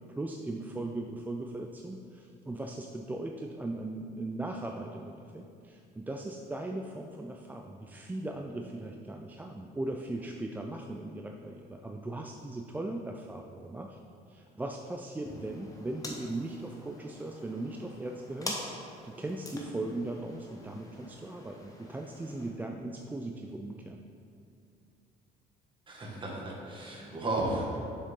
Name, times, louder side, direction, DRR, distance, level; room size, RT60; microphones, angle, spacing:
voice 1, 0.1-14.0 14.3-24.0, right 2 dB, 10° right, 2 dB, 0.3 m, -38 dB
sound 1, 15.2-22.5, left 1 dB, 20° left, 1.0 m, -44 dB
voice 2, 25.9-27.8, right 2 dB, 30° right, -3 dB, 1.8 m, -34 dB
6.6 x 6.4 x 3.7 m, 2.4 s
cardioid pair, 110°, 17 cm